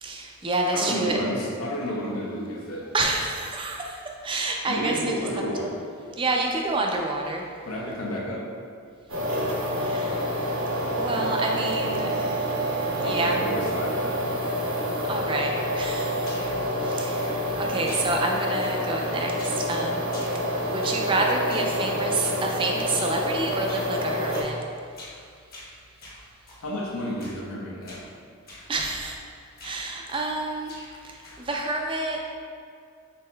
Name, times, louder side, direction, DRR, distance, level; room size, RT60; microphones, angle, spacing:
voice 1, 0.0-1.2 2.9-4.9 6.2-7.4 9.8-10.3 11.0-12.6 13.0-13.4 15.1-16.3 16.8-17.3 17.6-20.1 20.7-24.6 28.7-29.1 29.6-30.7 31.0-32.2, right 2 dB, 25° right, 1 dB, 0.4 m, -28 dB
voice 2, 0.7-2.9 4.7-5.7 7.6-8.5 13.0-14.2 26.6-28.0, equal, 85° left, -3 dB, 0.8 m, -31 dB
sound 1, 9.1-24.4, equal, 75° right, 1.0 m, -28 dB
sound 2, 16.2-16.7 17.2-17.6 17.8-18.3 18.6-19.0 19.4-19.7 20.0-21.1 21.5-21.8 22.2-22.4 22.9-23.2 23.7-23.9 24.3-24.6 24.9-25.2 25.5-26.7 27.2-27.5 27.8-28.1 28.5-28.7 29.0-29.3 29.6-30.4 30.6-31.5, left 1 dB, 45° left, 1.2 m, -45 dB
5.4 x 4.1 x 2.2 m, 2.3 s
head